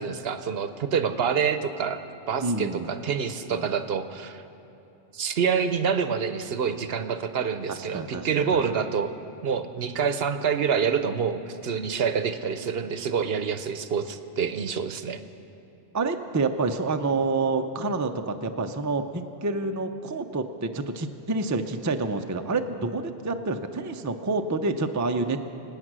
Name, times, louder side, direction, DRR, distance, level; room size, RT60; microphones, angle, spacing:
voice 1, 0.0-2.0 2.3-4.4 5.1-9.1 9.4-15.2, right 6 dB, 60° right, 10 dB, 0.9 m, -27 dB
voice 2, 2.4-2.9 3.5-3.7 7.7-8.6 15.9-25.4, right 3 dB, 20° right, 6 dB, 0.5 m, -28 dB
25.0 x 8.9 x 6.1 m, 2.8 s
omnidirectional pair, 1.2 m